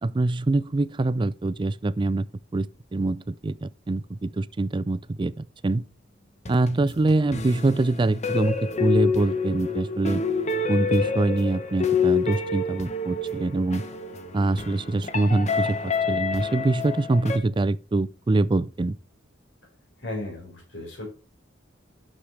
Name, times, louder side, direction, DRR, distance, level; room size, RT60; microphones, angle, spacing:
voice 1, 0.0-2.3 2.5-5.3 5.6-5.8 6.5-10.2 10.7-13.9 14.3-18.9, right 2 dB, 25° right, 0.4 m, -24 dB
sound 1, 6.5-17.4, left 5 dB, 35° left, 1.0 m, -28 dB
voice 2, 20.0-21.0, left 2 dB, 70° left, 4.6 m, -35 dB
10.0 x 6.5 x 3.2 m
head